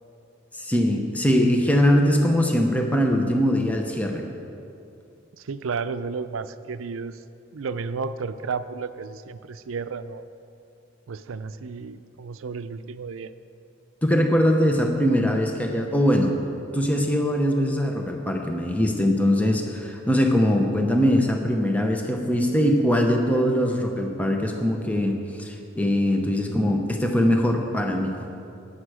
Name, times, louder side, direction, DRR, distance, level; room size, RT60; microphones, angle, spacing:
voice 1, 0.5-4.2 14.0-16.4 16.7-28.1, equal, 5° left, 2 dB, 0.8 m, -22 dB
voice 2, 5.3-7.2 7.5-10.3 11.1-13.3, right 5 dB, 85° right, 12 dB, 0.5 m, -32 dB
14.0 x 10.0 x 4.9 m, 2.6 s
head